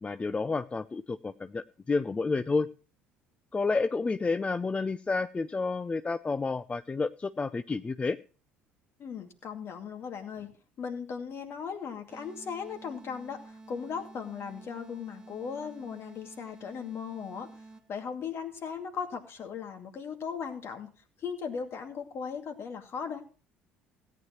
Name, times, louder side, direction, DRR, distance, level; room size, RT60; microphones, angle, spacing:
voice 1, 0.0-2.7 3.5-8.2, left 4 dB, 20° left, 13 dB, 0.5 m, -30 dB
voice 2, 9.0-10.5 10.8-17.5 17.9-20.9 21.2-23.2, left 6 dB, 45° left, 5 dB, 2.4 m, -37 dB
sound 1, 12.1-18.1, right 3 dB, 15° right, 1.9 m, -50 dB
17.0 x 9.4 x 3.1 m, 0.37 s
figure-of-eight pair, 60°, 6 cm